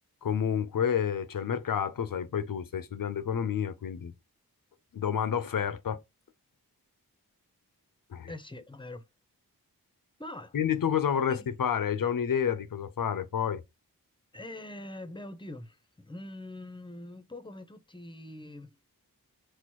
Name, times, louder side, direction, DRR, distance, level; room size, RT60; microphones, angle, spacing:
voice 1, 0.2-4.1 4.9-6.0 8.1-8.3 10.5-13.6, left 8 dB, 60° left, 0.6 m, -29 dB
voice 2, 8.3-9.1 10.2-10.6 11.3-11.5 14.3-18.8, left 1 dB, 15° left, 0.7 m, -43 dB
4.3 x 2.0 x 4.6 m
cardioid pair, 50°, 37 cm